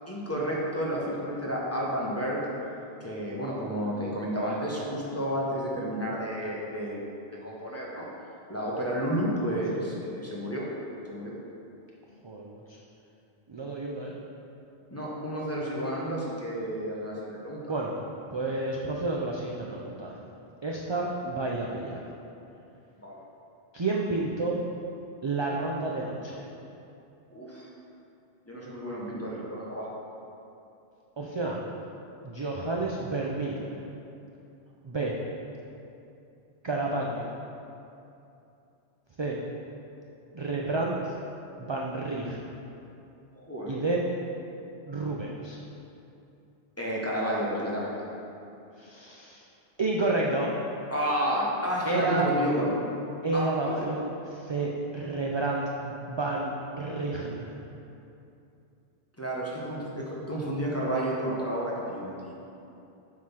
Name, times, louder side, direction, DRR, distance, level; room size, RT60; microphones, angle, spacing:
voice 1, 0.1-2.4 3.0-8.1 8.5-10.6 11.1-11.4 14.9-17.6 23.0-23.2 27.3-27.7 28.5-29.9 43.4-43.7 46.8-48.0 50.9-52.7 53.3-53.9 59.2-62.3, equal, 15° left, -5 dB, 1.1 m, -31 dB
voice 2, 12.2-12.8 13.5-14.1 17.6-17.9 18.3-20.1 20.6-22.0 23.7-24.6 25.2-26.4 31.2-31.6 32.2-33.8 34.8-35.1 36.6-37.3 39.2-39.4 40.3-41.1 41.6-42.4 43.7-44.0 44.9-45.6 48.8-49.4 49.8-50.5 51.8-52.3 53.2-57.6, right 2 dB, 40° right, -2 dB, 0.4 m, -30 dB
7.5 x 3.8 x 5.7 m, 2.7 s
omnidirectional pair, 1.1 m